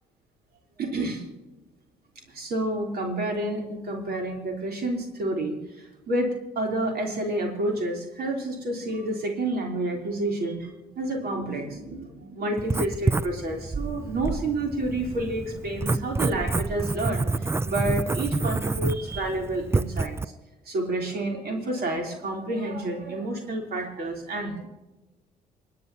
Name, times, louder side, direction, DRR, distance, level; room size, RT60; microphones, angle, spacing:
voice 1, 0.8-1.2 2.3-20.2 20.7-24.7, right 1 dB, 50° right, 2 dB, 3.5 m, -29 dB
Writing, 12.6-20.2, right 3 dB, 15° right, 0.5 m, -28 dB
29.0 x 9.7 x 2.9 m, 1.1 s
figure-of-eight pair, 45°, 20 cm